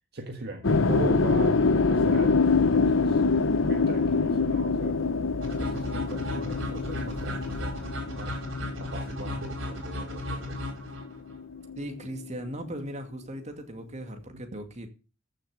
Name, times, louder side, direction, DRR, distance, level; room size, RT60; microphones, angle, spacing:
voice 1, 0.1-3.2 3.6-5.0 5.6-7.8 8.1-8.4 8.8-10.7, right 2 dB, 55° right, 1.6 m, -39 dB
sound 1, 0.6-10.8 11.0-12.7, left 4 dB, 75° left, 0.8 m, -25 dB
sound 2, 5.4-11.4, left 1 dB, 70° right, 4.9 m, -35 dB
voice 2, 11.8-14.9, equal, 35° right, 2.4 m, -38 dB
14.0 x 7.0 x 6.6 m
head